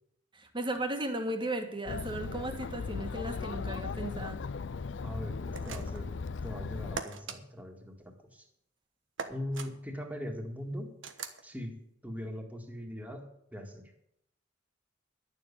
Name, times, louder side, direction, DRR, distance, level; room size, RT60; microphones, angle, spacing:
voice 1, 0.4-4.4, right 1 dB, 25° right, 6 dB, 1.7 m, -35 dB
Chatter, 1.9-7.0, left 4 dB, 70° left, 0.5 m, -37 dB
voice 2, 5.0-6.1 6.4-8.5 9.3-10.9 11.4-11.8 12.0-13.9, left 1 dB, 10° right, 2 dB, 1.9 m, -40 dB
sound 1, 5.5-6.1 7.0-7.4 9.2-9.7 11.0-11.4, right 5 dB, 80° right, 1.2 m, -40 dB
11.5 x 7.2 x 8.4 m, 0.74 s
head